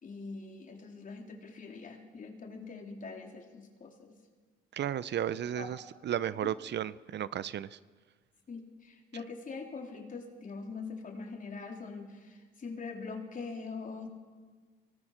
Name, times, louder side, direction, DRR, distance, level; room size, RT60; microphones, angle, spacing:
voice 1, 0.0-4.1 5.6-5.8 6.4-6.5 8.5-14.1, left 4 dB, 40° left, 2 dB, 3.6 m, -43 dB
voice 2, 4.7-5.8 6.0-7.8, right 10 dB, 60° right, 17 dB, 0.7 m, -33 dB
24.0 x 18.5 x 6.5 m, 1.4 s
cardioid pair, 90°, 20 cm